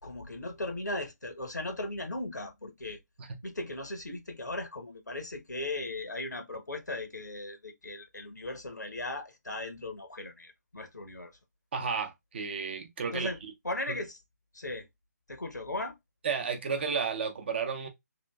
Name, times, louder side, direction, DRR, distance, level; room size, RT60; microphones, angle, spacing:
voice 1, 0.0-3.0 3.4-11.3 13.0-13.4 13.6-14.2 14.5-14.9 15.3-16.0, left 2 dB, 75° left, 0.9 m, -37 dB
voice 2, 11.7-13.3 13.9-14.0 16.2-17.9, right 5 dB, 35° right, 0.7 m, -32 dB
2.9 x 2.5 x 2.3 m
figure-of-eight pair, 145°, 9 cm